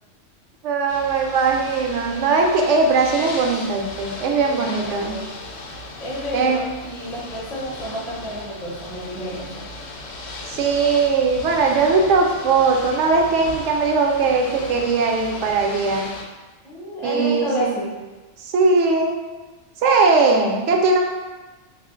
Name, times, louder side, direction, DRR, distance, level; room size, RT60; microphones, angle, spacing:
voice 1, 0.6-5.1 6.3-6.6 10.5-16.1 17.0-17.7 18.4-19.2 19.8-21.0, right 4 dB, 75° right, 2 dB, 0.9 m, -19 dB
Ocean / Boat Water vehicle, 0.9-16.2, left 2 dB, 75° left, 0.9 m, -36 dB
voice 2, 4.4-5.3 6.0-9.7 16.6-18.0, equal, ahead, -6 dB, 0.6 m, -30 dB
3.4 x 2.4 x 3.7 m, 1.2 s
omnidirectional pair, 1.2 m